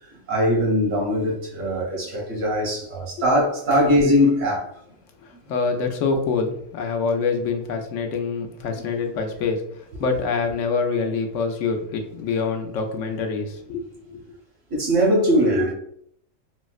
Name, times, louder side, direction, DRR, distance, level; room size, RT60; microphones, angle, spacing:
voice 1, 0.0-4.7 5.3-5.4 14.7-15.7, equal, 80° right, 1.4 m, -21 dB
voice 2, 5.2-14.2, left 4 dB, 80° left, 0.9 m, -26 dB
4.2 x 2.0 x 2.3 m
omnidirectional pair, 1.3 m